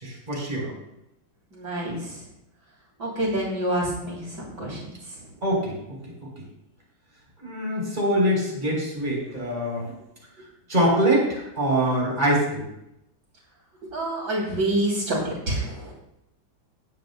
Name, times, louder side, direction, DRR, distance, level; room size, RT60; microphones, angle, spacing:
voice 1, 0.0-0.7 5.4-5.8 6.1-6.2 7.4-9.9 10.7-12.7, right 1 dB, 25° right, -3 dB, 3.7 m, -24 dB
voice 2, 1.5-2.1 3.0-4.9 13.8-15.9, right 1 dB, 70° right, -3 dB, 3.7 m, -27 dB
17.5 x 9.3 x 2.2 m, 0.83 s
omnidirectional pair, 1.9 m